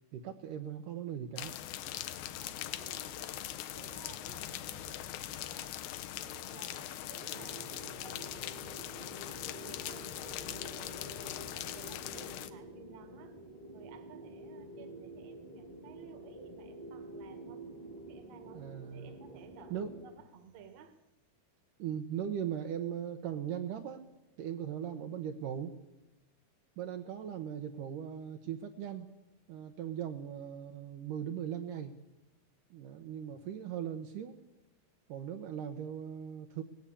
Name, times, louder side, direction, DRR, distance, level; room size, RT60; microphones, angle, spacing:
voice 1, 0.1-1.5 18.5-19.2 19.7-20.0 21.8-24.0 24.4-25.7 26.8-29.1 29.5-32.0 32.7-34.4 35.1-36.6, right 9 dB, 80° right, 6 dB, 1.9 m, -39 dB
sound 1, 1.4-12.5, left 12 dB, 75° left, 2.3 m, -41 dB
voice 2, 2.4-5.8 6.1-10.1 10.4-13.4 13.7-17.7 17.9-18.6 18.9-20.9, right 7 dB, 55° right, 8 dB, 1.9 m, -55 dB
sound 2, 7.3-20.1, right 1 dB, 15° left, 1.3 m, -49 dB
19.0 x 16.0 x 8.6 m, 1.0 s
omnidirectional pair, 5.0 m